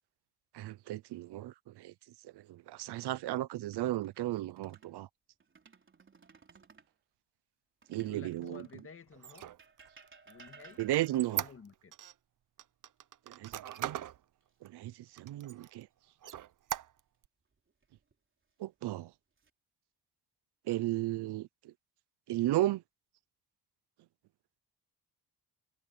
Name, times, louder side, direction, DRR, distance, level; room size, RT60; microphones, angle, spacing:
voice 1, 0.5-1.9 2.2-5.1 7.9-8.7 10.8-11.4 13.3-14.0 14.6-15.9 18.6-19.1 20.7-21.7 22.3-22.8, right 15 dB, 85° right, 0.7 m, -34 dB
sound 1, 3.6-5.0 5.4-6.9 7.8-9.0 9.6-11.4 13.3-14.0 14.4-14.6 17.5-18.1 18.9-19.5, right 5 dB, 30° right, 3.7 m, -59 dB
voice 2, 7.9-9.5 10.3-10.8 11.3-11.9, left 5 dB, 35° left, 1.8 m, -52 dB
Squeak, 9.1-12.1 12.6-14.2 14.6-14.7 15.2-15.8 16.2-17.3, right 11 dB, 50° right, 0.7 m, -40 dB
cardioid pair, 135°, 39 cm